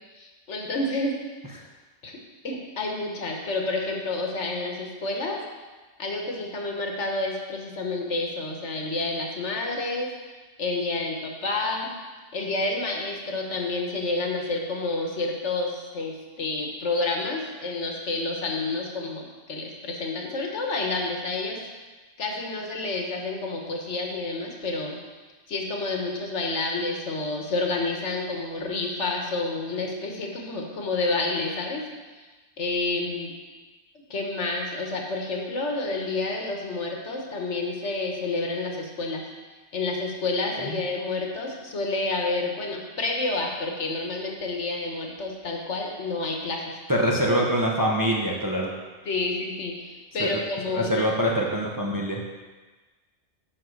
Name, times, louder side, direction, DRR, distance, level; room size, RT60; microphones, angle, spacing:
voice 1, 0.1-1.1 2.0-2.2 2.4-5.4 6.0-10.1 10.6-11.9 12.3-21.6 22.2-25.0 25.5-31.8 32.6-33.3 34.1-39.2 39.7-46.6 49.0-51.1, left 3 dB, 65° left, 1 dB, 1.5 m, -29 dB
voice 2, 46.9-48.7 50.2-50.4 50.7-52.2, equal, 20° right, -2 dB, 0.8 m, -24 dB
10.0 x 4.1 x 6.4 m, 1.3 s
omnidirectional pair, 1.3 m